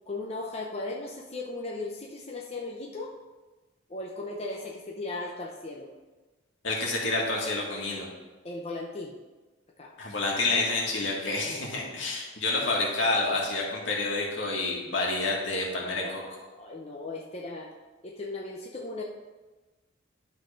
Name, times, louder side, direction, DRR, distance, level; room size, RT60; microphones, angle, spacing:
voice 1, 0.1-3.1 3.9-5.9 8.4-9.2 9.8-9.9 11.4-11.6 16.0-17.7 18.0-19.0, left 2 dB, 30° left, -1 dB, 0.7 m, -37 dB
voice 2, 6.6-8.1 10.0-16.2, left 2 dB, 75° left, -2 dB, 2.0 m, -28 dB
11.0 x 4.1 x 5.1 m, 1.2 s
head